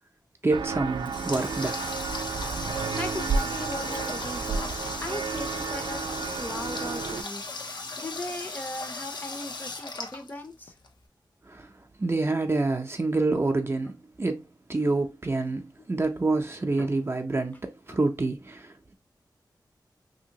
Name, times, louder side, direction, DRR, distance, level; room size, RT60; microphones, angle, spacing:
voice 1, 0.4-1.8 11.5-11.7 12.0-15.6 15.9-18.9, right 3 dB, 30° right, 0.5 m, -27 dB
Walk footsteps, 0.5-7.2, right 5 dB, 90° right, 0.3 m, -32 dB
Water tap faucet, 0.7-10.9, left 3 dB, 70° left, 0.6 m, -37 dB
voice 2, 2.9-10.7 16.8-16.9 17.9-18.0, left 1 dB, 25° left, 0.6 m, -38 dB
2.9 x 2.7 x 2.8 m
wide cardioid pair, 75°, 8 cm